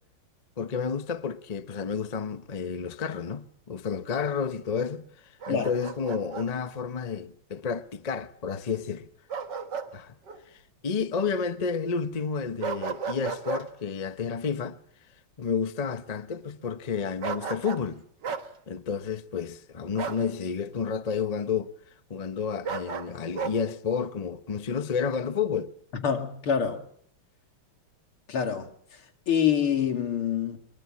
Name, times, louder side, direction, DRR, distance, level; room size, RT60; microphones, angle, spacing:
voice 1, 0.6-9.1 9.9-10.1 10.5-14.8 15.4-18.0 18.7-21.7 22.1-25.7, left 6 dB, 45° left, 0.5 m, -31 dB
Bark, 5.4-6.5 9.3-9.9 10.3-10.4 12.6-13.7 17.2-17.9 18.2-18.5 20.0-20.3 22.6-23.6, right 6 dB, 55° right, 2.0 m, -33 dB
voice 2, 26.0-26.8 28.3-28.7 29.3-30.6, left 8 dB, 75° left, 3.2 m, -26 dB
23.0 x 23.0 x 7.5 m
omnidirectional pair, 2.4 m